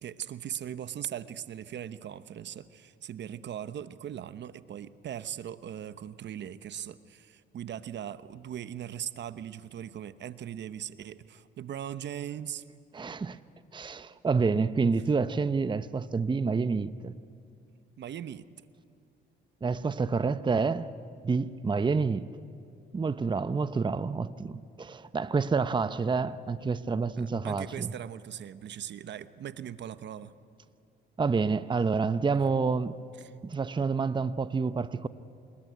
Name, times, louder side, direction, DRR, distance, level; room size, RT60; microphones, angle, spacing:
voice 1, 0.0-12.6 18.0-18.4 27.2-30.3 33.2-33.3, right 10 dB, 65° right, 1.0 m, -39 dB
voice 2, 12.9-13.4 13.7-17.1 19.6-20.9 21.2-22.3 22.9-27.9 31.2-33.0 33.4-35.1, right 4 dB, 25° right, 0.8 m, -28 dB
27.0 x 21.0 x 9.4 m
cardioid pair, 90°, 20 cm